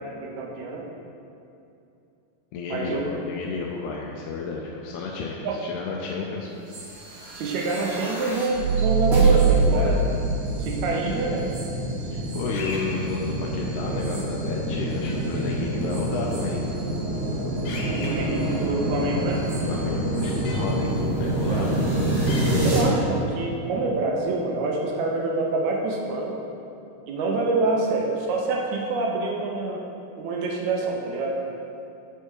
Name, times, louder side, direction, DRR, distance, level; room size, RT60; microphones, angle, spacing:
voice 1, 0.2-0.9 2.7-3.0 5.4-5.6 6.2-6.3 7.4-10.0 10.6-11.5 17.9-19.4 21.5-21.7 22.6-26.4 27.1-29.8 30.2-31.4, right 3 dB, 75° right, -1 dB, 1.8 m, -26 dB
voice 2, 2.5-6.5 9.7-10.0 12.3-16.6 19.5-20.9 21.2-21.8, left 4 dB, 85° left, -2 dB, 1.7 m, -32 dB
sound 1, 6.7-21.0, right 2 dB, 50° right, 1.4 m, -45 dB
sound 2, 7.0-22.8, right 2 dB, 35° right, 1.0 m, -25 dB
sound 3, 12.5-12.8 15.0-15.2 17.7-18.1 20.5-20.6 22.3-22.4, left 3 dB, 65° left, 2.4 m, -35 dB
8.1 x 4.4 x 4.7 m, 2.7 s
omnidirectional pair, 3.9 m